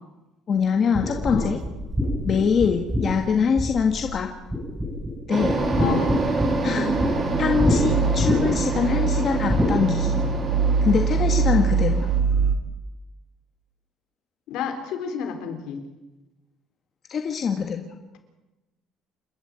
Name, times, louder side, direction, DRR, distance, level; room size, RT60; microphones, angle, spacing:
voice 1, 0.5-1.6 2.2-4.3 5.3-5.6 6.6-6.9 7.4-10.2 10.8-12.1 17.1-17.9, left 6 dB, 30° left, 4 dB, 1.6 m, -23 dB
sound 1, 0.9-4.2 4.5-5.1 5.4-7.1 7.6-7.8 8.2-8.7 9.5-9.7, left 1 dB, 5° right, 6.4 m, -25 dB
sound 2, 5.3-12.2, right 3 dB, 25° right, 3.4 m, -27 dB
voice 2, 5.8-6.3 6.6-7.0 14.5-15.8, left 6 dB, 65° left, 6 dB, 4.1 m, -30 dB
sound 3, 6.2-12.5, right 5 dB, 80° right, 2.5 m, -24 dB
28.5 x 12.5 x 9.1 m, 1.1 s
cardioid pair, 170°, 0 cm